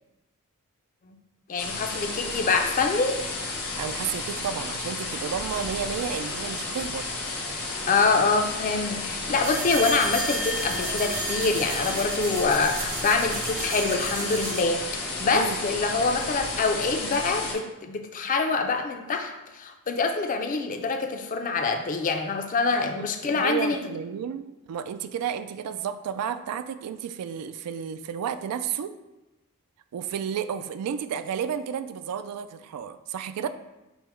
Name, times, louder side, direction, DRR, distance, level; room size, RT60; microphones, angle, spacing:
voice 1, 1.5-3.2 7.9-23.8, left 4 dB, 35° left, 5 dB, 0.4 m, -25 dB
sound 1, 1.6-17.5, left 3 dB, 85° left, 1.2 m, -32 dB
voice 2, 3.8-7.0 15.3-15.6 23.0-29.0 29.9-33.5, right 8 dB, 90° right, 14 dB, 0.3 m, -32 dB
sound 2, 9.4-14.6, right 2 dB, 40° right, 0.6 m, -33 dB
5.5 x 2.1 x 4.4 m, 1.0 s
head